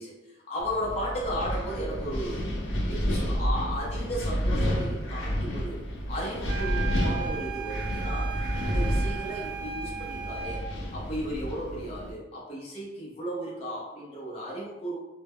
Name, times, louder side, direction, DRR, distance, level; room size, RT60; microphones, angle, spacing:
voice 1, 0.0-2.5 2.9-10.6 10.9-15.0, equal, 30° left, -5 dB, 0.5 m, -35 dB
Wind, 0.6-12.1, equal, 85° left, 0.5 m, -30 dB
sound 1, 6.4-10.7, right 8 dB, 80° right, 0.5 m, -37 dB
2.1 x 2.0 x 3.4 m, 1.0 s
head